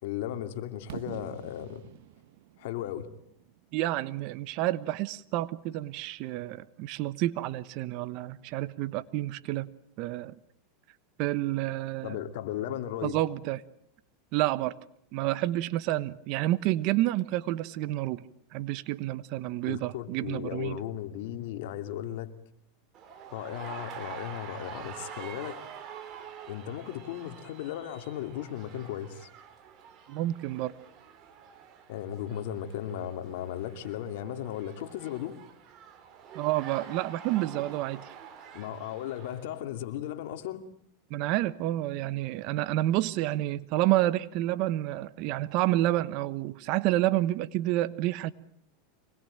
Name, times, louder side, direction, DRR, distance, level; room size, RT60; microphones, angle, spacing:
voice 1, 0.0-1.8 2.6-3.1 12.0-13.2 19.7-22.3 23.3-25.6 26.5-29.3 31.9-35.4 38.5-40.7, left 11 dB, 70° left, 2.6 m, -36 dB
Fireworks, 0.9-4.8, right 14 dB, 70° right, 1.4 m, -47 dB
voice 2, 3.7-9.7 10.0-10.4 11.2-12.2 13.0-13.6 14.3-14.8 15.1-18.2 18.5-20.8 30.1-30.7 36.3-38.1 41.1-48.3, right 16 dB, 55° right, 1.1 m, -29 dB
sound 1, 22.9-39.5, right 8 dB, 40° right, 3.7 m, -46 dB
25.0 x 20.5 x 9.0 m
supercardioid pair, 125°, 0 cm